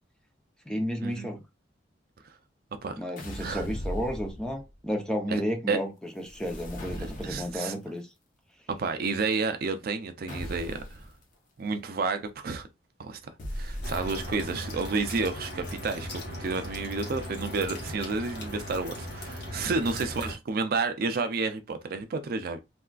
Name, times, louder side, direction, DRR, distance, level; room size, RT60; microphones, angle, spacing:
voice 1, 0.7-1.4 3.0-8.1, equal, 5° left, 0.5 m, -32 dB
sound 1, 3.2-4.8 6.2-7.7 10.3-11.1 13.4-14.5, equal, 45° left, 0.6 m, -38 dB
voice 2, 7.0-7.7 8.7-11.0 11.6-12.7 13.0-22.6, right 4 dB, 55° right, 0.4 m, -31 dB
sound 2, 13.8-20.4, left 1 dB, 60° left, 1.1 m, -38 dB
3.4 x 2.4 x 2.2 m
head